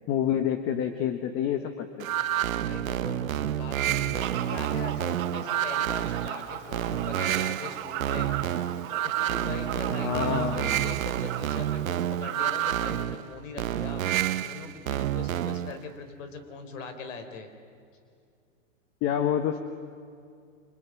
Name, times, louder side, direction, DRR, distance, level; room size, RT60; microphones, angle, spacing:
voice 1, 0.1-2.1 10.0-10.9 19.0-19.6, left 9 dB, 35° left, 8 dB, 1.4 m, -28 dB
sound 1, 2.0-15.8, right 11 dB, 85° right, 1.0 m, -29 dB
voice 2, 2.6-8.3 9.0-14.0 14.4-17.5, left 5 dB, 70° left, 8 dB, 4.4 m, -41 dB
Fowl, 4.2-13.0, right 11 dB, 55° right, 2.6 m, -37 dB
29.5 x 26.5 x 6.3 m, 2.3 s
hypercardioid pair, 140°, 40 cm